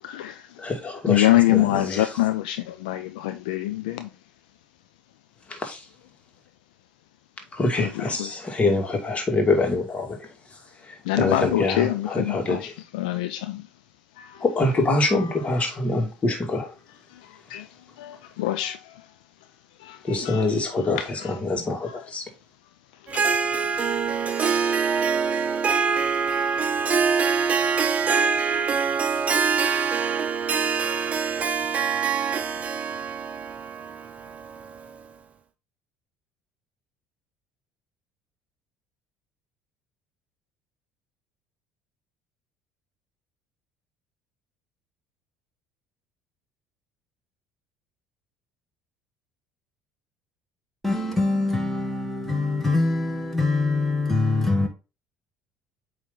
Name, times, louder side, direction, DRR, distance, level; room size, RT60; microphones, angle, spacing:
voice 1, 0.0-0.6 1.1-4.1 7.7-8.3 11.0-13.7 14.2-14.4 15.1-15.3 17.1-17.7 18.0-19.1 19.8-20.7 21.0-21.3 21.9-22.0 23.0-23.6, left 15 dB, 80° left, 0.6 m, -26 dB
voice 2, 0.6-2.1 5.5-5.9 7.5-10.3 10.8-12.7 14.4-16.7 20.0-22.3, left 2 dB, 30° left, 2.2 m, -25 dB
Harp, 23.1-34.9, right 6 dB, 30° right, 0.8 m, -24 dB
voice 3, 50.8-54.7, left 2 dB, 5° left, 2.0 m, -23 dB
8.4 x 3.2 x 3.8 m
hypercardioid pair, 65°, 4 cm